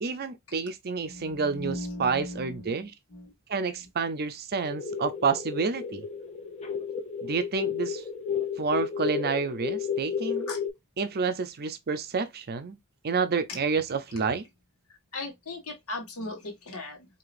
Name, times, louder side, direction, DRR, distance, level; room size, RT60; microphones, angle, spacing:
voice 1, 0.0-2.9 3.5-6.1 7.2-8.0 8.6-10.5 11.0-12.8 13.0-14.4, right 5 dB, 45° right, 0.5 m, -29 dB
voice 2, 1.1-2.8 3.1-3.3 10.5-10.6 15.1-17.1, left 2 dB, 70° left, 1.5 m, -37 dB
sound 1, 4.6-10.7, left 6 dB, 30° left, 0.8 m, -32 dB
4.7 x 2.8 x 2.5 m
head